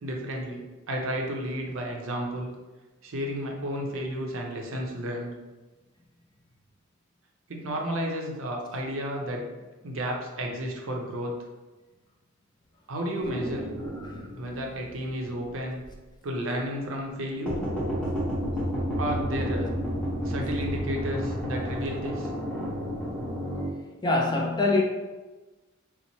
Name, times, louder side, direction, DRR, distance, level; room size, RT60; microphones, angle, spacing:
voice 1, 0.0-2.5 3.0-5.3 7.5-9.5 9.8-11.3 12.9-13.7 14.4-15.8 16.2-17.6 19.0-19.7 20.2-22.3, equal, 80° right, 0.6 m, -32 dB
sound 1, 13.2-15.5 15.8-15.9 17.5-23.7, equal, 5° left, 0.8 m, -31 dB
voice 2, 24.0-24.8, left 2 dB, 20° left, 0.4 m, -24 dB
2.9 x 2.0 x 4.0 m
head